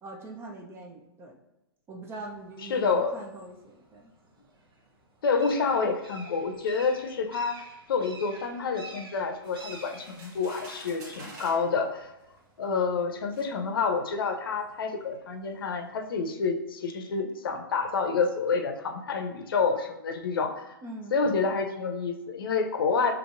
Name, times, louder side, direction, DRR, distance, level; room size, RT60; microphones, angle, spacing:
voice 1, 0.0-1.4 1.9-4.1 20.8-21.2, right 2 dB, 20° right, 2 dB, 0.6 m, -42 dB
sound 1, 2.2-16.0, right 2 dB, 80° right, 1.2 m, -52 dB
voice 2, 2.7-3.2 5.2-12.1 12.6-20.8 21.1-23.1, left 5 dB, 70° left, 5 dB, 0.6 m, -28 dB
sound 2, 9.4-11.7 12.6-12.7 13.3-13.5, right 1 dB, 45° right, 1.4 m, -47 dB
5.2 x 3.0 x 2.5 m, 0.96 s
hypercardioid pair, 130°, 12 cm